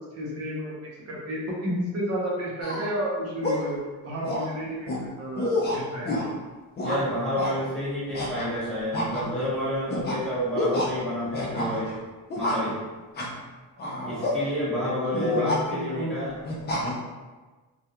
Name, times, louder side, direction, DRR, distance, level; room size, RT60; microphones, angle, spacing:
voice 1, 0.0-6.2 13.8-16.2, equal, 45° right, -4 dB, 0.7 m, -32 dB
sound 1, 2.6-2.9 3.4-3.7 4.2-4.5 4.9-5.0 5.4-6.3 6.8-7.0 7.4-7.5 8.1-8.6 8.9-9.5 9.9-10.2 10.6-10.9 11.3-11.9 12.3-12.7 13.2-13.4 13.8-14.4 15.1-15.6 16.4-16.9, left 1 dB, 30° left, 0.4 m, -28 dB
voice 2, 6.8-11.9 12.3-12.7 14.0-16.3, equal, ahead, -12 dB, 1.1 m, -29 dB
2.3 x 2.3 x 2.8 m, 1.3 s
cardioid pair, 175°, 35 cm